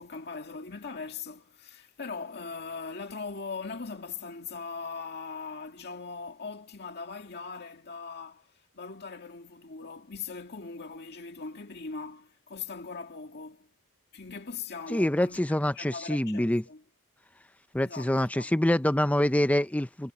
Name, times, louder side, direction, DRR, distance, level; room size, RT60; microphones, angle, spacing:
voice 1, 0.0-13.7 14.1-15.4 15.7-16.8 17.8-18.5, left 4 dB, 50° left, 2.1 m, -40 dB
voice 2, 14.9-16.6 17.7-20.1, left 1 dB, 5° left, 0.6 m, -25 dB
head